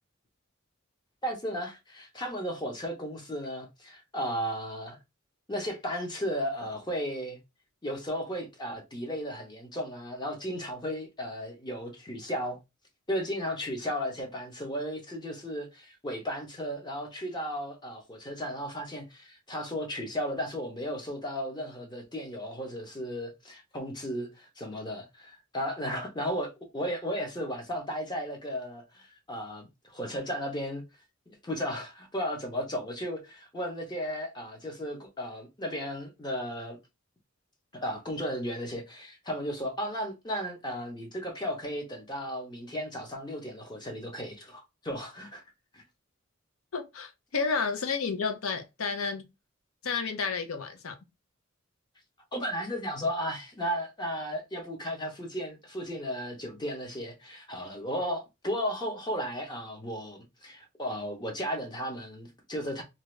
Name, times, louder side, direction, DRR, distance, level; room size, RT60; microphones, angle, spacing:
voice 1, 1.2-5.0 5.5-7.4 7.8-12.6 13.1-30.8 31.3-36.8 37.7-45.4 45.7-45.8 52.3-62.8, equal, 20° left, 0.8 m, -35 dB
voice 2, 46.7-49.2 49.8-50.9, left 5 dB, 85° left, 0.7 m, -31 dB
2.7 x 2.4 x 3.2 m
head